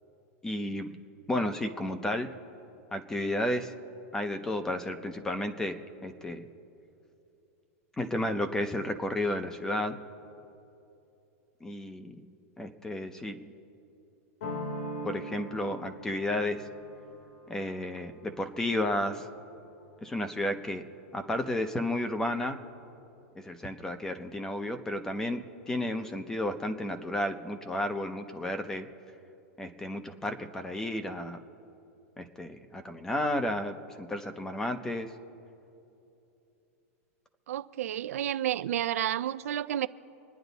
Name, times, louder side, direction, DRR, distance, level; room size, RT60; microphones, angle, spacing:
voice 1, 0.4-1.0 1.3-2.3 2.9-3.7 4.1-6.5 8.0-10.0 11.6-12.3 12.6-13.5 15.0-16.7 17.5-19.3 20.0-20.8 21.1-22.6 23.4-28.9 29.6-31.4 32.2-35.1, left 1 dB, 5° left, 0.6 m, -32 dB
sound 1, 14.4-20.0, equal, 70° left, 2.4 m, -42 dB
voice 2, 37.5-39.9, right 11 dB, 75° right, 0.5 m, -30 dB
27.0 x 10.0 x 4.1 m
supercardioid pair, 170°, 8 cm